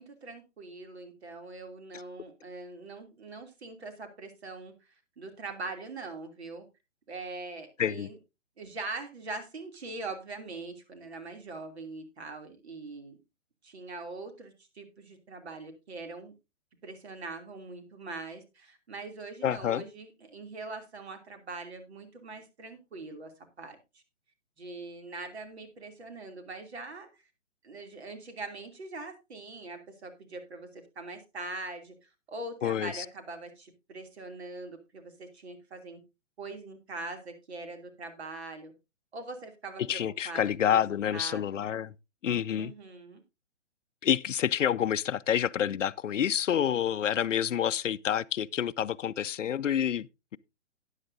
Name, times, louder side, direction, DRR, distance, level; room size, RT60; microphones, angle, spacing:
voice 1, 0.0-4.7 5.2-6.6 7.1-8.2 8.6-13.2 13.6-16.3 16.8-23.3 23.6-24.0 24.6-27.2 27.6-36.0 36.4-38.7 39.1-41.6 42.5-43.2, right 3 dB, 60° right, 3.0 m, -42 dB
voice 2, 19.4-19.8 32.6-33.1 39.9-41.9 42.2-42.7 44.0-50.1, left 9 dB, 85° left, 0.6 m, -28 dB
13.0 x 10.0 x 2.7 m
hypercardioid pair, 170°, 36 cm